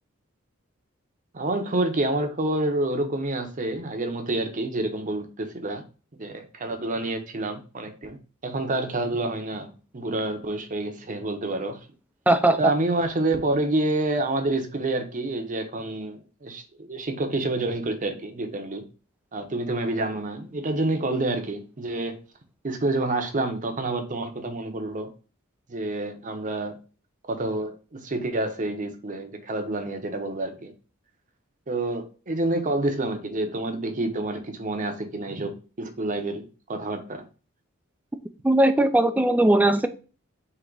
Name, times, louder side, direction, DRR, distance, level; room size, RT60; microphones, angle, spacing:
voice 1, 1.3-5.8 6.2-8.2 8.4-11.8 12.6-18.8 19.3-22.2 22.6-25.1 25.7-26.7 27.3-30.7 31.7-35.5 35.8-37.2, right 2 dB, 35° right, 6 dB, 0.7 m, -28 dB
voice 2, 12.3-12.6 38.4-39.9, right 1 dB, 5° right, 10 dB, 0.3 m, -19 dB
3.9 x 2.8 x 4.5 m, 0.36 s
head